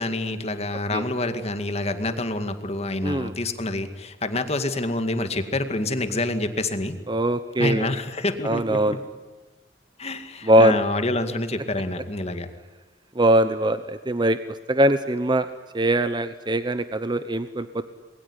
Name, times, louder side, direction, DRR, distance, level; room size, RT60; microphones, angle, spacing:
voice 1, 0.0-7.0 7.6-9.0 10.0-12.5, left 2 dB, 40° left, 8 dB, 2.1 m, -27 dB
voice 2, 3.0-3.3 7.1-7.9 8.4-9.0 10.4-10.8 13.1-14.4 14.7-15.5 15.7-17.8, right 1 dB, 25° right, 11 dB, 0.9 m, -21 dB
27.0 x 22.0 x 10.0 m, 1.3 s
head